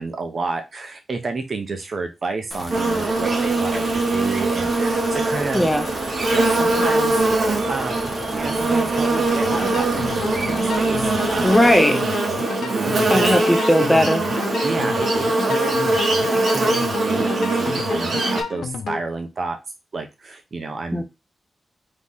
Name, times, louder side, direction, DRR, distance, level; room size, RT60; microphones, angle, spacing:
voice 1, 0.0-5.7 6.3-11.7 12.4-13.3 14.6-16.0 16.3-19.6 19.9-21.0, right 3 dB, 45° right, 5 dB, 1.0 m, -30 dB
sound 1, 2.5-11.8, left 1 dB, 20° left, 1.1 m, -36 dB
Buzz, 2.7-18.4, right 2 dB, 65° right, 1.2 m, -22 dB
voice 2, 5.5-5.9 11.4-12.0 13.1-14.2 20.9-21.0, equal, 5° left, 7 dB, 0.6 m, -17 dB
sound 2, 9.4-19.0, left 6 dB, 80° left, 0.5 m, -31 dB
4.0 x 3.2 x 3.7 m, 0.24 s
cardioid pair, 90°, 0 cm